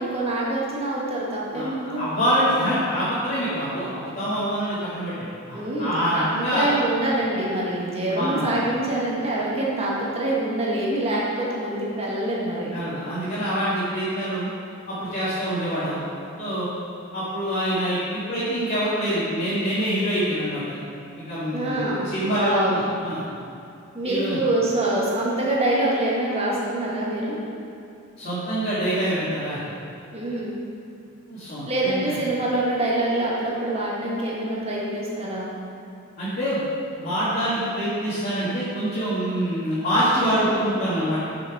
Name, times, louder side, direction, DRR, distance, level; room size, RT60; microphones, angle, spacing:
voice 1, 0.0-2.0 5.5-12.7 21.5-22.8 23.9-27.4 30.1-30.6 31.7-35.5 40.2-40.5, right 1 dB, 30° right, -5 dB, 1.5 m, -25 dB
voice 2, 1.5-5.1 5.5-6.7 8.1-8.5 12.7-14.5 14.9-16.0 16.4-16.7 17.1-20.8 21.3-23.2 24.0-24.4 28.2-29.6 31.3-32.2 36.2-36.6 36.9-41.2, equal, 45° left, -12 dB, 1.8 m, -25 dB
6.5 x 6.1 x 4.7 m, 2.6 s
head